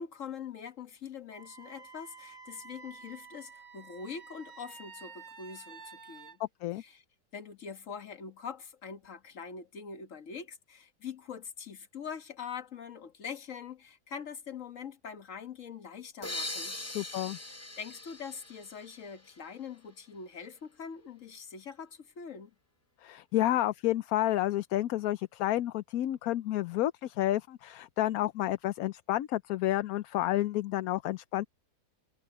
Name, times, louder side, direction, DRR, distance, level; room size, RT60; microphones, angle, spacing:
voice 1, 0.0-6.4 6.8-7.0 7.3-16.8 17.3-17.5 17.8-22.5, left 6 dB, 50° left, 1.7 m, -43 dB
Wind instrument woodwind instrument, 1.3-6.4, right 5 dB, 40° right, 1.7 m, -50 dB
voice 2, 6.4-6.8 16.9-17.4 23.0-31.5, left 14 dB, 70° left, 1.0 m, -30 dB
sound 1, 16.2-19.8, left 2 dB, 25° left, 0.3 m, -41 dB
omnidirectional pair, 1.7 m